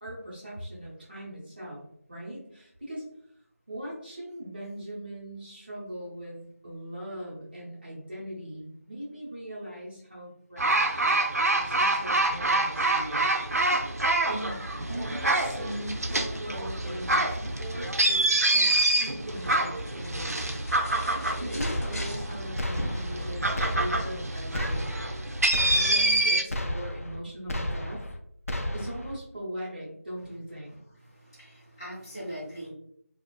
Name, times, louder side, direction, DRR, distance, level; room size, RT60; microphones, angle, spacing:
voice 1, 0.0-1.8 2.1-3.0 3.7-13.4 14.3-20.5 21.4-24.9 25.7-28.0 28.7-30.8, right 1 dB, 40° right, -6 dB, 0.9 m, -40 dB
sound 1, 10.6-26.4, right 2 dB, 80° right, 0.4 m, -26 dB
sound 2, 18.9-24.0, equal, 80° left, 0.8 m, -40 dB
sound 3, 21.6-22.3 22.6-23.3 23.6-24.2 24.5-25.2 25.5-26.2 26.5-27.2 27.5-28.2 28.5-29.2, left 1 dB, 65° left, 0.4 m, -33 dB
voice 2, 30.7-32.7, equal, 15° left, -12 dB, 0.6 m, -41 dB
2.4 x 2.3 x 2.3 m, 0.70 s
figure-of-eight pair, 175°, 8 cm